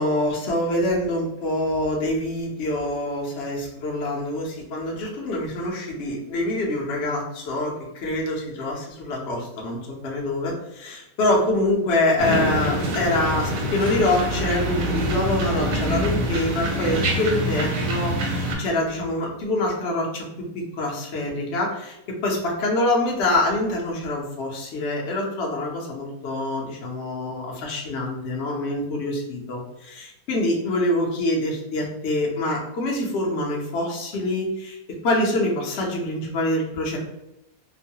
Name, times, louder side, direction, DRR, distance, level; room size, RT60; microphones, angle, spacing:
voice 1, 0.0-20.2 20.8-22.0 22.2-34.8 35.0-37.0, left 1 dB, 60° left, -2 dB, 0.7 m, -25 dB
sound 1, 12.2-18.6, equal, 60° right, 0.9 m, -25 dB
3.0 x 2.2 x 2.7 m, 0.88 s
omnidirectional pair, 2.0 m